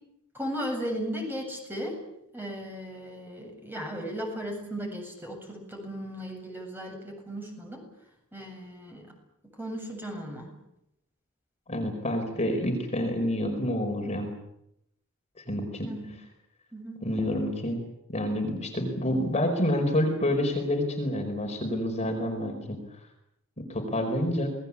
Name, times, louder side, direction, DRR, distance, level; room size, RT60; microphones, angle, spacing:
voice 1, 0.3-1.9 2.3-7.8 8.3-9.0 9.6-10.5 15.8-16.1 16.7-17.0, equal, 10° right, 2 dB, 7.9 m, -36 dB
voice 2, 11.7-14.3 15.4-15.9 17.0-17.8 18.1-22.8 23.6-24.5, left 1 dB, 30° left, 3 dB, 4.8 m, -28 dB
27.5 x 20.0 x 8.5 m, 0.81 s
head